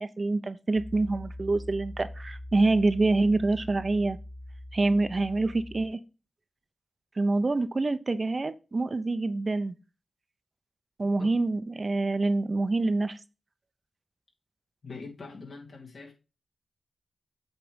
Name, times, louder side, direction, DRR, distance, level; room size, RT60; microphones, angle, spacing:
voice 1, 0.0-4.2 4.7-6.0 7.2-9.8 11.0-13.2, right 2 dB, 45° right, 0.7 m, -26 dB
Piano, 0.7-5.9, left 1 dB, 45° left, 2.4 m, -42 dB
voice 2, 14.8-16.1, left 4 dB, 75° left, 2.4 m, -43 dB
8.1 x 3.4 x 5.1 m
cardioid pair, 45°, 0 cm